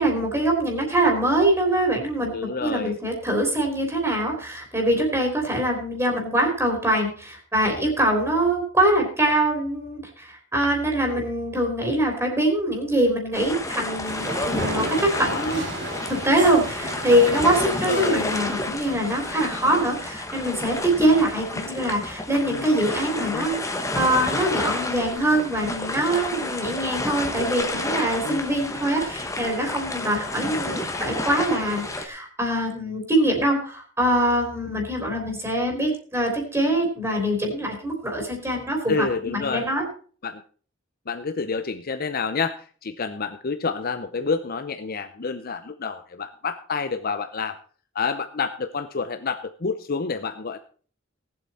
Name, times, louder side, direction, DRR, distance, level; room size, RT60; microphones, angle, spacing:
voice 1, 0.0-15.6 16.1-39.9, right 1 dB, 15° right, 1 dB, 3.5 m, -23 dB
voice 2, 2.3-3.0 15.2-15.8 17.6-18.3 22.5-22.7 23.2-23.5 28.2-28.5 38.9-39.7 40.2-40.4 41.1-47.6 47.9-50.6, left 5 dB, 50° left, 8 dB, 0.7 m, -29 dB
sound 1, 13.3-32.1, left 2 dB, 15° left, 1.4 m, -30 dB
sound 2, 14.0-19.0, right 2 dB, 65° right, 2.6 m, -34 dB
18.0 x 8.0 x 4.2 m, 0.42 s
head